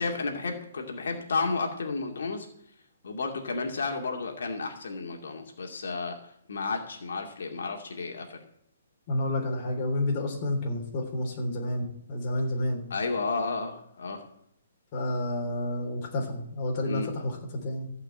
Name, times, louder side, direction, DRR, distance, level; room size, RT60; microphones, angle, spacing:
voice 1, 0.0-2.5 3.0-8.4 12.9-14.2 16.9-17.1, left 4 dB, 80° left, 2 dB, 2.3 m, -32 dB
voice 2, 9.1-12.8 14.9-17.9, left 1 dB, 30° left, 0 dB, 3.4 m, -30 dB
15.0 x 5.6 x 8.7 m, 0.73 s
hypercardioid pair, 165°, 0 cm